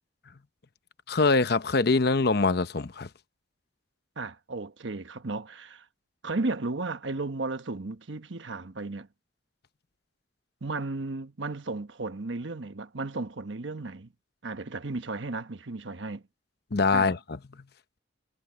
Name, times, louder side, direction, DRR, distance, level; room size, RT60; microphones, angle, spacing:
voice 1, 1.1-3.1 16.7-17.4, left 3 dB, 55° left, 0.9 m, -24 dB
voice 2, 4.2-5.8 6.2-9.1 10.6-14.1 14.4-16.2 16.9-17.1, right 3 dB, 75° right, 1.2 m, -34 dB
head